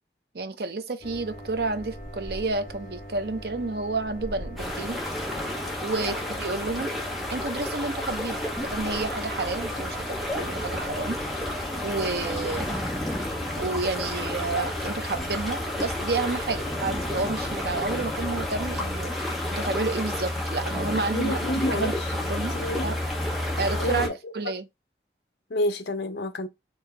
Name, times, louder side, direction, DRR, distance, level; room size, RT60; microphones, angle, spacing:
voice 1, 0.3-5.0 5.8-7.0 7.3-11.2 11.8-12.8 13.5-19.1 19.5-21.4 21.7-22.6 22.8-23.0 23.6-24.7, right 3 dB, 60° right, 0.6 m, -30 dB
sound 1, 1.0-19.0, equal, 45° left, 1.8 m, -41 dB
sound 2, 4.6-24.1, left 1 dB, ahead, 0.9 m, -31 dB
voice 2, 21.1-22.0 22.5-23.0 23.8-24.1 25.5-26.5, left 1 dB, 70° left, 0.7 m, -29 dB
4.5 x 2.8 x 4.0 m
head